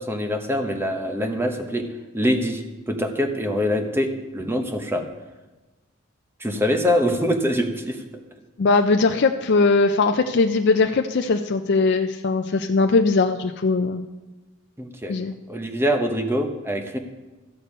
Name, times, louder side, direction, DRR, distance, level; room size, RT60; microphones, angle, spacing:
voice 1, 0.0-1.9 2.1-5.0 6.4-8.0 14.8-15.2 15.5-17.0, equal, 10° right, 6 dB, 0.9 m, -24 dB
voice 2, 8.6-14.0 15.1-15.3, left 3 dB, 55° left, 6 dB, 0.4 m, -20 dB
13.5 x 6.7 x 5.4 m, 1.2 s
head